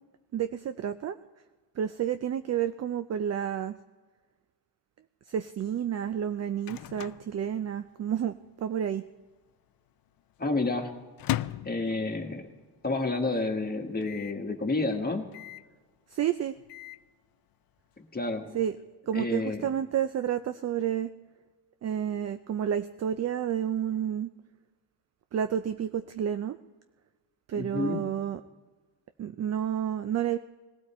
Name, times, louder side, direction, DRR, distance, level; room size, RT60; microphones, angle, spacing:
voice 1, 0.3-1.2 1.8-3.8 5.3-9.0 16.1-16.6 18.5-18.8 19.1-21.1 21.8-24.3 25.3-26.6 27.5-28.4 29.2-30.4, right 9 dB, 40° right, 10 dB, 0.4 m, -30 dB
Microwave oven, 6.0-8.2 8.5-8.6 8.8-9.4 9.9-12.6 13.0-13.1 13.3-13.4 14.0-14.4 15.3-15.8 16.4-17.1, left 14 dB, 60° left, 0.5 m, -38 dB
voice 2, 10.4-10.9 11.6-12.4 12.8-15.3 18.1-18.4 19.1-19.6 27.5-28.0, left 3 dB, 20° left, 4 dB, 1.5 m, -29 dB
19.5 x 15.5 x 4.3 m, 1.4 s
cardioid pair, 105°, 41 cm